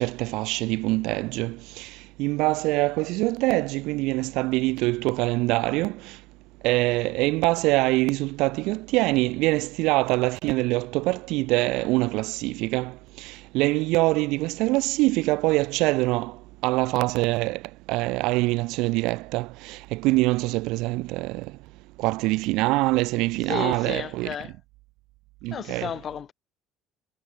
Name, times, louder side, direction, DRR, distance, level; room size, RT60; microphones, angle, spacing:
voice 1, 0.0-1.9 2.2-6.0 6.6-12.9 13.5-16.3 16.6-17.6 17.9-21.4 22.0-24.3 25.4-25.9, right 22 dB, 80° right, 1.2 m, -24 dB
voice 2, 23.5-24.5 25.5-26.3, left 8 dB, 40° left, 4.4 m, -33 dB
cardioid pair, 125°, 0 cm